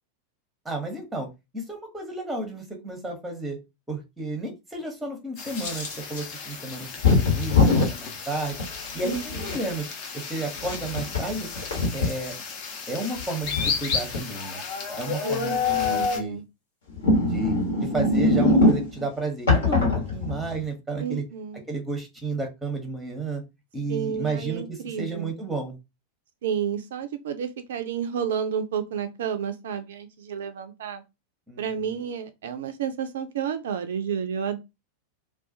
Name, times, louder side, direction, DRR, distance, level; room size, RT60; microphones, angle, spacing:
voice 1, 0.6-1.3 1.5-3.6 3.9-6.9 7.2-8.6 8.9-9.9 10.1-11.5 11.9-12.3 12.9-14.6 15.0-16.4 17.3-17.5 17.8-21.2 21.7-23.4 23.7-25.7 31.5-32.0, right 2 dB, 5° right, 0.8 m, -32 dB
sound 1, 5.4-16.2, left 6 dB, 40° left, 0.6 m, -32 dB
sound 2, 5.6-6.2 7.0-7.9 8.6-9.6 10.6-12.1 13.2-14.2 15.6-16.0 16.9-19.0 19.5-20.6, left 2 dB, 65° left, 1.0 m, -22 dB
voice 2, 9.0-9.5 15.2-16.4 21.0-21.6 23.9-25.3 26.4-31.0 31.6-34.6, right 8 dB, 60° right, 0.3 m, -31 dB
2.3 x 2.2 x 2.6 m
figure-of-eight pair, 90°, 0 cm